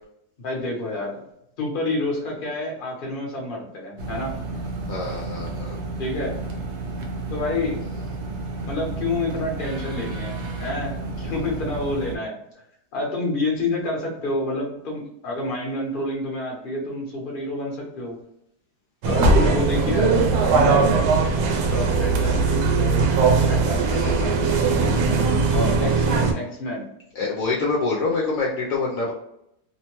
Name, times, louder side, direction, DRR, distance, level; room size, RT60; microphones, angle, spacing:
voice 1, 0.4-1.1 1.6-4.3 6.0-6.3 7.3-7.8 8.7-12.4 12.9-18.2 19.0-20.9 21.7-25.0 25.5-26.8, left 2 dB, 45° left, -1 dB, 0.8 m, -28 dB
sound 1, 4.0-12.2, right 3 dB, 65° right, 0.7 m, -32 dB
voice 2, 4.9-5.8 11.2-11.3 23.9-24.8 27.1-29.1, left 3 dB, 70° left, -3 dB, 0.9 m, -26 dB
sound 2, 19.0-26.3, right 4 dB, 85° right, 1.1 m, -19 dB
2.9 x 2.1 x 2.9 m, 0.78 s
omnidirectional pair, 1.7 m